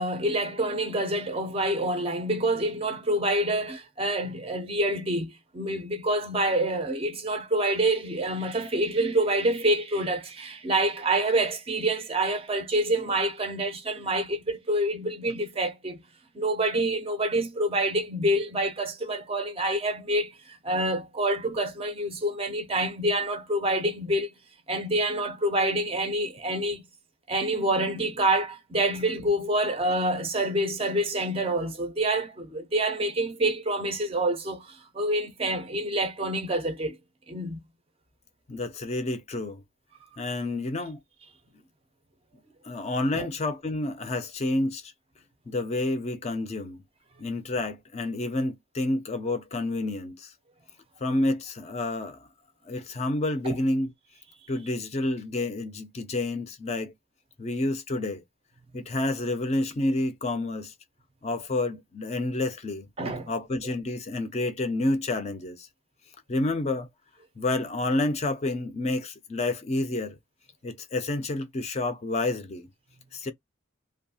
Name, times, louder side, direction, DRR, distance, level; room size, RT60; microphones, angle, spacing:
voice 1, 0.0-16.0 16.3-24.3 24.7-26.8 27.3-37.0 37.3-37.6 43.1-43.3 53.5-53.6 63.0-63.3, right 1 dB, 25° right, 0.4 m, -27 dB
voice 2, 38.5-39.6 40.2-41.0 42.6-44.9 45.5-46.8 47.2-50.3 51.0-52.3 52.7-53.9 54.5-56.9 57.4-58.2 58.7-60.7 61.2-62.9 63.3-65.7 66.3-66.9 67.4-70.2 70.6-72.7 73.1-73.3, left 2 dB, 30° left, 0.4 m, -29 dB
2.6 x 2.3 x 2.6 m
head